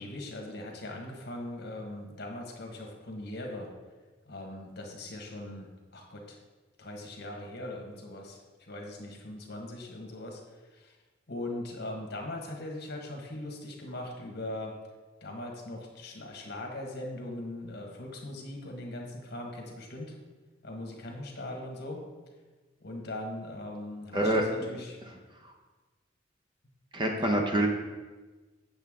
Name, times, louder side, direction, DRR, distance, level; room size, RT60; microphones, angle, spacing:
voice 1, 0.0-3.7 4.3-6.4 6.8-11.0 11.3-14.7 15.2-20.2 20.6-22.0 22.8-25.0 27.2-27.4, left 1 dB, 60° left, 1 dB, 1.4 m, -40 dB
voice 2, 24.1-24.8 26.9-27.7, right 1 dB, 25° right, 2 dB, 0.9 m, -26 dB
8.0 x 7.2 x 3.7 m, 1.3 s
head